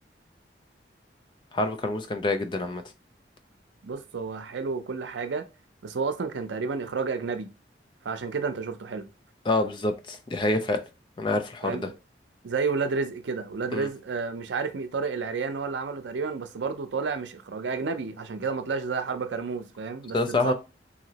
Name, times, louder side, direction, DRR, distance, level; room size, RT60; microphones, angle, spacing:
voice 1, 1.5-2.8 9.5-10.8 11.2-11.9 13.7-13.9 20.1-20.5, left 2 dB, 25° left, 0.4 m, -26 dB
voice 2, 3.8-5.4 5.8-7.5 8.0-9.1 11.6-12.0 12.4-20.5, right 4 dB, 80° right, 0.5 m, -31 dB
2.9 x 2.8 x 2.8 m
head